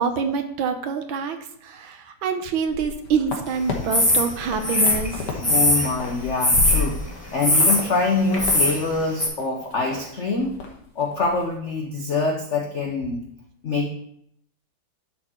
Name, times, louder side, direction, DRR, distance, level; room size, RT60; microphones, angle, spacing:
voice 1, 0.0-5.2, right 5 dB, 70° right, 7 dB, 1.5 m, -26 dB
sound 1, 2.6-3.8 4.2-5.4 5.7-7.2 7.6-7.8 8.1-8.6 8.9-9.0 9.4-10.0 10.3-10.7 11.0-11.3, left 5 dB, 85° left, 2.3 m, -30 dB
sound 2, 3.9-4.3 4.6-5.9 6.4-6.9 7.4-7.8 8.3-8.8 9.2-9.3, left 1 dB, 10° left, 1.5 m, -19 dB
voice 2, 5.4-10.6 10.9-13.2 13.6-13.9, left 3 dB, 65° left, 1 dB, 0.7 m, -25 dB
11.0 x 4.2 x 4.4 m, 0.71 s
omnidirectional pair, 2.4 m